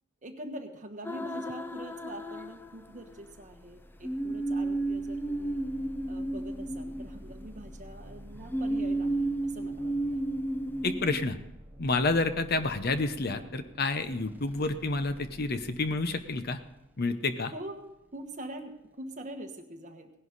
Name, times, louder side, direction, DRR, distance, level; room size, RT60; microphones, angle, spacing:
voice 1, 0.2-5.6 6.0-10.2 17.5-20.1, right 1 dB, 40° right, 5 dB, 1.3 m, -44 dB
sound 1, 1.0-3.2 4.0-7.7 8.5-11.3, right 1 dB, 10° left, 0.4 m, -32 dB
sound 2, 1.9-19.3, equal, 10° right, 1.0 m, -50 dB
voice 2, 10.8-11.4 11.8-16.6 17.0-17.5, left 3 dB, 50° left, 10 dB, 0.8 m, -29 dB
17.5 x 11.0 x 4.1 m, 0.91 s
head